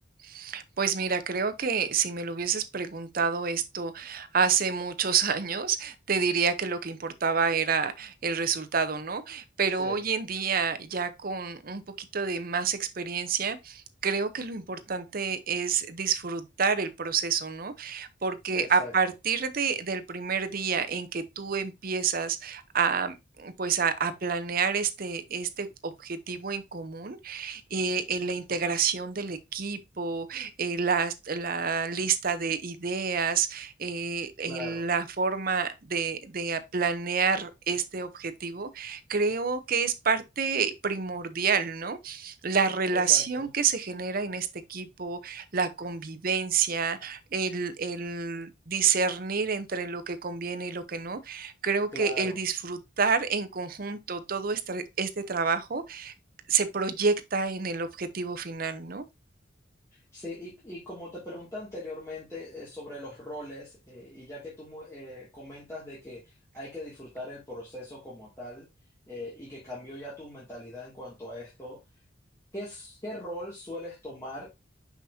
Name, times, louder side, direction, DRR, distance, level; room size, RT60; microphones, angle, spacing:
voice 1, 0.2-56.1 56.5-59.0, right 5 dB, 50° right, 0.7 m, -29 dB
voice 2, 18.5-18.9 34.5-34.8 42.9-43.5 51.9-52.4 60.1-68.7 69.1-71.8 72.5-74.5, left 1 dB, 15° left, 2.3 m, -40 dB
6.0 x 5.7 x 2.7 m
head